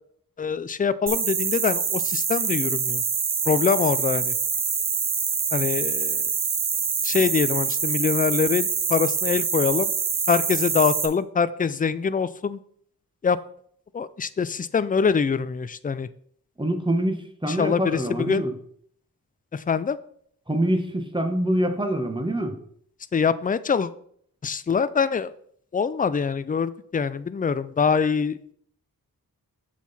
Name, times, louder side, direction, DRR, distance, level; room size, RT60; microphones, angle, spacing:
voice 1, 0.4-3.0 3.5-4.3 5.5-6.2 7.0-9.9 10.3-12.6 13.2-13.4 13.9-16.1 17.4-18.0 18.3-18.4 19.7-20.0 23.1-23.9 24.4-25.3 25.7-28.5, left 6 dB, 25° left, 15 dB, 0.4 m, -24 dB
sound 1, 1.1-11.1, right 6 dB, 60° right, 1.0 m, -25 dB
voice 2, 16.6-17.2 17.4-18.5 20.5-22.6, right 1 dB, 15° right, 5 dB, 1.3 m, -25 dB
7.2 x 5.8 x 4.2 m, 0.64 s
cardioid pair, 60°, 36 cm